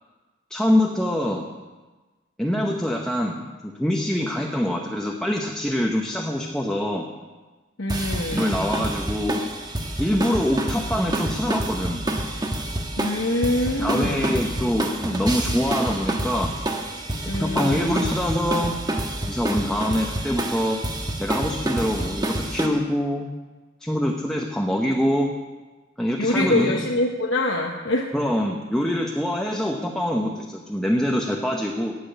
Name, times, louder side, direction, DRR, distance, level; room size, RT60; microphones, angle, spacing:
voice 1, 0.5-1.5 2.4-7.1 8.3-9.4 10.0-12.1 13.8-16.5 17.4-18.7 19.2-20.8 21.2-23.3 23.8-25.3 26.0-26.8 28.1-31.9, left 1 dB, 5° left, 0 dB, 1.0 m, -24 dB
voice 2, 7.8-8.6 13.0-14.4 17.3-18.0 26.2-28.1, left 1 dB, 75° left, 1 dB, 1.0 m, -24 dB
sound 1, 7.9-22.7, right 1 dB, 20° right, 1.3 m, -28 dB
15.5 x 6.1 x 9.3 m, 1.3 s
head